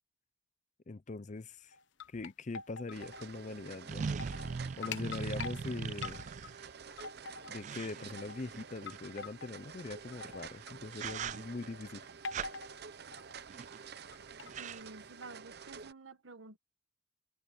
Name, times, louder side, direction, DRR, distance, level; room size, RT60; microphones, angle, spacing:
voice 1, 0.9-1.8 2.1-4.1 4.8-6.2 7.5-12.0, left 3 dB, 40° left, 0.6 m, -42 dB
sound 1, 1.7-3.3 3.6-3.7 4.0-4.5 4.8-5.6 6.0-6.5 6.9-7.8 8.2-8.4 8.9-9.6 10.1-10.7 11.1-11.5 12.2-12.8 13.1-13.4 14.1-14.5 15.2-15.3, left 5 dB, 70° left, 0.8 m, -44 dB
sound 2, 2.9-3.0 3.9-6.7 7.6-9.0 10.4-10.6 10.9-11.7 12.3-12.5 13.5-13.9 14.1-14.2 14.4-14.8, right 5 dB, 40° right, 0.3 m, -40 dB
sound 3, 2.9-15.9, right 6 dB, 55° right, 0.8 m, -50 dB
voice 2, 14.6-16.6, right 3 dB, 80° right, 1.5 m, -50 dB
head